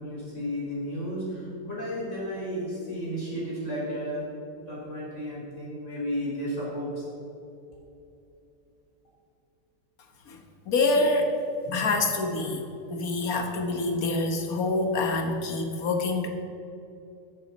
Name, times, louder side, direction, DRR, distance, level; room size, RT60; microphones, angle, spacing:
voice 1, 0.0-4.3 4.6-7.0, equal, 45° left, -7 dB, 3.7 m, -33 dB
voice 2, 10.7-11.4 11.7-12.6 12.9-16.3, left 2 dB, 60° left, 4 dB, 1.7 m, -26 dB
13.0 x 11.5 x 4.2 m, 2.8 s
omnidirectional pair, 1.8 m